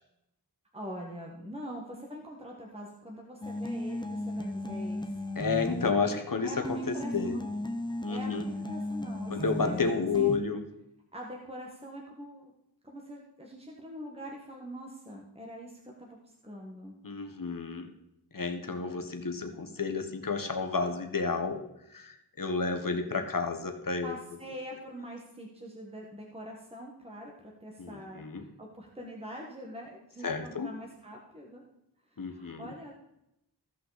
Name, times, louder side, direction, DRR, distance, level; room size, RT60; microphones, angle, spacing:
voice 1, 0.7-5.3 6.4-7.5 8.1-9.9 10.1-10.3 11.1-12.5 12.8-17.0 24.0-31.6 32.1-32.9, equal, 15° right, -1 dB, 1.5 m, -44 dB
sound 1, 3.4-6.2 6.6-10.4, left 1 dB, 10° left, 0.8 m, -35 dB
voice 2, 5.4-7.4 8.0-8.4 9.3-10.6 17.0-17.9 18.3-21.6 21.9-24.1 27.8-28.5 30.2-30.7 32.2-32.7, left 4 dB, 55° left, 5 dB, 1.2 m, -31 dB
15.5 x 5.5 x 4.1 m, 0.84 s
wide cardioid pair, 60°, 40 cm